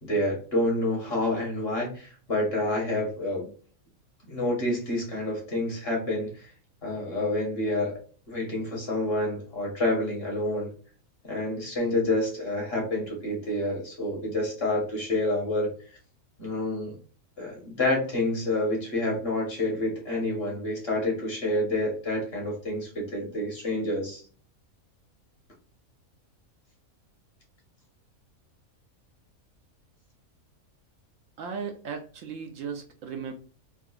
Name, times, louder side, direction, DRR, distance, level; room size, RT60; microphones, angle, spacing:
voice 1, 0.0-3.5 4.3-6.5 6.8-8.0 8.3-10.7 11.2-15.7 16.4-16.9 17.4-24.2, left 1 dB, 45° left, -1 dB, 1.4 m, -28 dB
voice 2, 31.4-33.3, right 6 dB, 70° right, 4 dB, 0.9 m, -36 dB
3.7 x 2.4 x 2.3 m, 0.41 s
omnidirectional pair, 1.5 m